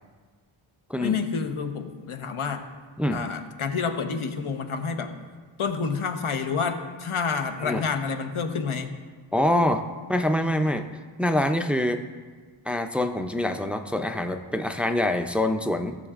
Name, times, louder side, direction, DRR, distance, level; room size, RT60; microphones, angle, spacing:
voice 1, 1.0-2.6 3.1-5.2 5.6-9.0, left 5 dB, 80° left, 6 dB, 0.9 m, -29 dB
voice 2, 9.3-9.8 10.1-10.9 11.2-12.0 12.7-16.0, left 1 dB, 5° right, 6 dB, 0.3 m, -25 dB
15.5 x 7.0 x 2.4 m, 1.5 s
wide cardioid pair, 105°, 50 cm